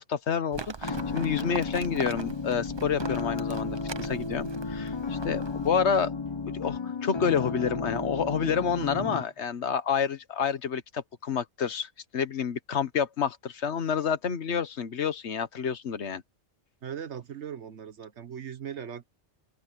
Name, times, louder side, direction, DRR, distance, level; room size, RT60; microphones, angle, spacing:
voice 1, 0.0-6.1 6.5-16.2, left 7 dB, 75° left, 1.4 m, -29 dB
Livestock farm animals working animals, 0.5-5.7, right 4 dB, 30° right, 0.6 m, -41 dB
sound 1, 0.8-9.2, left 4 dB, 30° left, 0.7 m, -33 dB
sound 2, 2.7-9.1, right 1 dB, 45° right, 4.2 m, -50 dB
voice 2, 16.8-19.0, right 8 dB, 75° right, 1.4 m, -39 dB
open air
omnidirectional pair, 1.2 m